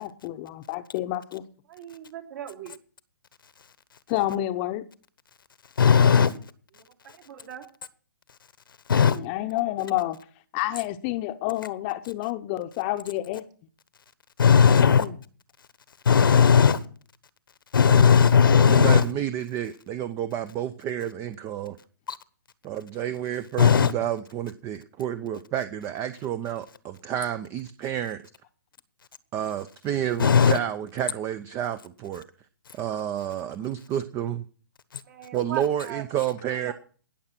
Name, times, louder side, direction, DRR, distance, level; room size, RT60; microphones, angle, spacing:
voice 1, 0.0-1.4 4.1-4.8 8.9-10.2 10.5-13.4 14.8-15.2, left 15 dB, 30° left, 0.8 m, -29 dB
voice 2, 1.7-2.7 6.7-6.8 7.1-7.6 35.0-36.0 36.5-36.7, right 10 dB, 55° right, 3.2 m, -39 dB
voice 3, 5.8-6.3 8.9-9.2 14.4-15.0 16.0-16.8 17.7-19.0 22.1-22.2 23.6-23.9 30.2-30.6, left 6 dB, 75° left, 1.2 m, -17 dB
voice 4, 17.8-21.8 22.6-28.2 29.3-32.3 32.7-34.4 35.3-36.7, right 10 dB, 20° right, 0.6 m, -30 dB
18.5 x 7.4 x 5.9 m
hypercardioid pair, 140°, 11 cm